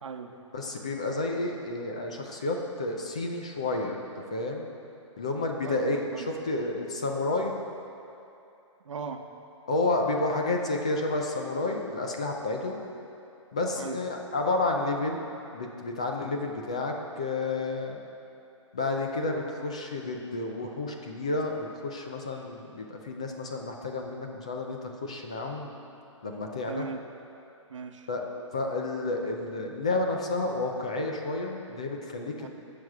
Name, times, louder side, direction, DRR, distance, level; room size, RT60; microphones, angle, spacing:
voice 1, 0.0-0.3 5.6-6.3 8.8-9.3 13.8-14.0 26.7-27.0 27.7-28.1 32.4-32.5, right 5 dB, 70° right, 4 dB, 0.9 m, -38 dB
voice 2, 0.5-4.0 4.3-4.7 5.2-6.1 6.4-7.5 9.7-12.8 13.5-15.2 15.5-18.0 18.7-25.7 26.2-26.9 28.1-28.2 28.5-32.5, left 2 dB, 10° left, 2 dB, 0.3 m, -30 dB
16.5 x 6.5 x 4.7 m, 2.8 s
hypercardioid pair, 180°, 16 cm